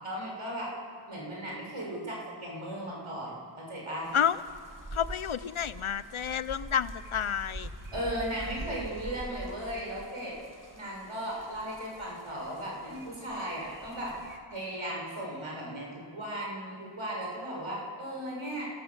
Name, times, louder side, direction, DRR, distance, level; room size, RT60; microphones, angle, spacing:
voice 1, 0.0-0.7 1.1-4.1 7.9-10.4 10.7-14.2 14.5-18.7, right 1 dB, 85° right, -3 dB, 6.8 m, -36 dB
sound 1, 4.0-14.4, right 1 dB, 40° right, 3.1 m, -45 dB
voice 2, 4.9-7.7, left 8 dB, 85° left, 15 dB, 0.8 m, -30 dB
29.0 x 18.0 x 7.4 m, 2.2 s
wide cardioid pair, 45°, 48 cm